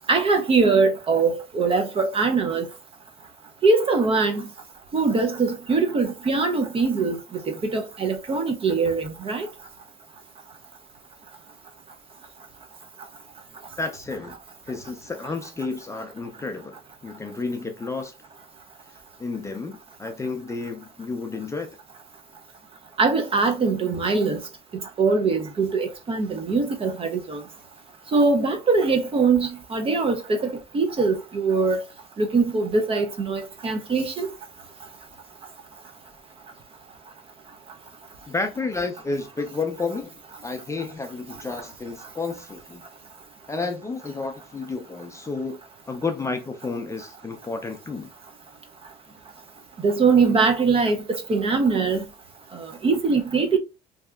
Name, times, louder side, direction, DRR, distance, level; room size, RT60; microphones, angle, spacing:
voice 1, 0.1-2.7 3.6-4.4 4.9-9.5 23.0-24.4 25.0-27.4 28.1-31.8 32.2-34.3 49.8-52.0 52.5-53.6, right 4 dB, 35° right, 0.5 m, -22 dB
voice 2, 13.8-14.4 14.7-18.1 19.2-21.7 38.3-42.8 43.5-45.6 45.9-48.1, left 3 dB, 15° left, 0.4 m, -31 dB
2.7 x 2.3 x 2.2 m
cardioid pair, 110°, 17 cm